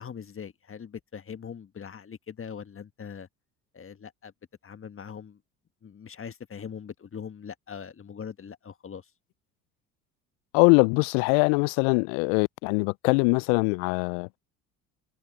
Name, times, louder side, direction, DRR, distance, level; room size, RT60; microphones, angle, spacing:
voice 1, 0.0-3.3 3.7-4.3 4.6-5.4 5.8-9.1, left 7 dB, 30° left, 1.6 m, -41 dB
voice 2, 10.5-14.4, left 35 dB, 70° left, 0.5 m, -22 dB
hypercardioid pair, 60°, 40 cm